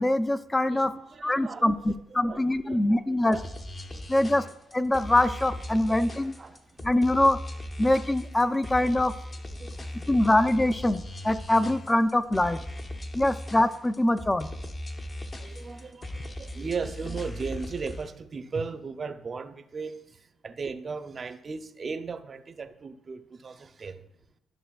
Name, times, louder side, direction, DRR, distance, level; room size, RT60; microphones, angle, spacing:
voice 1, 0.0-0.9 1.2-3.4 4.1-4.4 4.7-6.4 6.8-7.4 7.8-9.1 10.1-12.6 13.1-14.5, left 1 dB, 15° left, 10 dB, 0.4 m, -23 dB
voice 2, 0.7-3.4 3.9-4.5 5.7-6.8 9.5-10.2 11.4-11.5 13.0-13.2 14.6-14.7 15.0-24.1, right 5 dB, 40° right, 10 dB, 0.6 m, -38 dB
sound 1, 3.3-18.1, left 1 dB, 30° left, 0.8 m, -39 dB
12.5 x 6.2 x 2.4 m, 0.78 s
cardioid pair, 90°, 0 cm